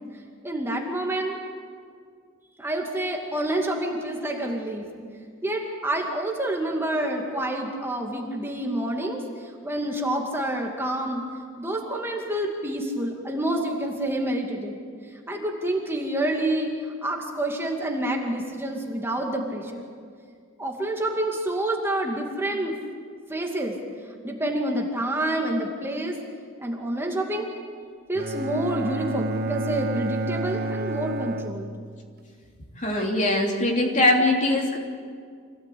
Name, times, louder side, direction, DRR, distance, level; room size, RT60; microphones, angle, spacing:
voice 1, 0.4-1.4 2.6-4.8 5.4-9.2 9.6-11.2 11.6-14.7 15.3-19.9 20.6-22.8 23.3-23.8 24.2-26.1 26.6-27.5 28.1-31.7, right 1 dB, 10° right, 0 dB, 2.3 m, -28 dB
Bowed string instrument, 28.2-32.2, right 2 dB, 50° right, 0.9 m, -30 dB
voice 2, 32.8-34.8, left 1 dB, 40° left, 0 dB, 3.4 m, -21 dB
26.0 x 16.5 x 8.6 m, 2.1 s
head